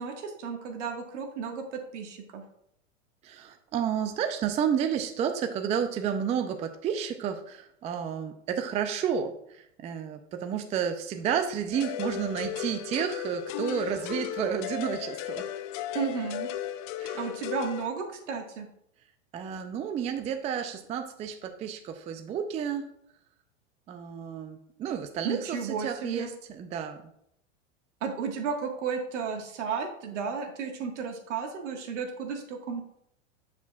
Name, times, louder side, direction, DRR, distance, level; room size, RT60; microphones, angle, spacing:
voice 1, 0.0-2.4 15.9-16.5 17.1-18.7 25.2-26.3 28.0-32.8, right 6 dB, 70° right, 3 dB, 1.6 m, -33 dB
voice 2, 3.2-15.5 17.0-17.2 19.3-22.8 23.9-27.0, right 8 dB, 20° right, 7 dB, 0.4 m, -31 dB
sound 1, 11.7-17.9, left 12 dB, 45° left, 0.4 m, -35 dB
7.2 x 6.8 x 2.3 m, 0.73 s
hypercardioid pair, 110°, 37 cm